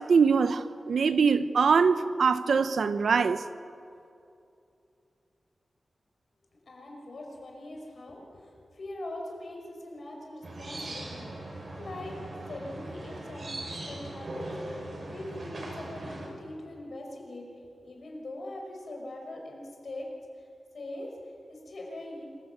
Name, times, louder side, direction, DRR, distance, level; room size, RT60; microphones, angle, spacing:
voice 1, 0.0-3.4, right 5 dB, 75° right, 0.9 m, -23 dB
voice 2, 6.5-12.2 12.5-17.5 17.8-20.1 20.3-20.5 20.7-22.3, left 1 dB, 60° left, 5.6 m, -42 dB
sound 1, 10.4-16.3, right 1 dB, 50° right, 6.6 m, -39 dB
26.5 x 15.5 x 8.1 m
wide cardioid pair, 105°, 0 cm